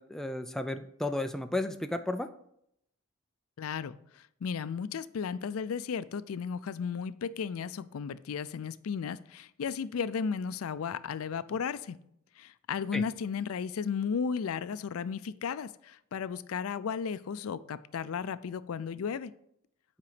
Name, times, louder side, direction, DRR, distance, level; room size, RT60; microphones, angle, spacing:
voice 1, 0.0-2.3 12.9-13.0, left 2 dB, ahead, 7 dB, 0.3 m, -33 dB
voice 2, 3.6-12.0 12.4-19.3, left 6 dB, 85° left, 15 dB, 0.4 m, -34 dB
8.4 x 5.1 x 5.0 m, 0.74 s
head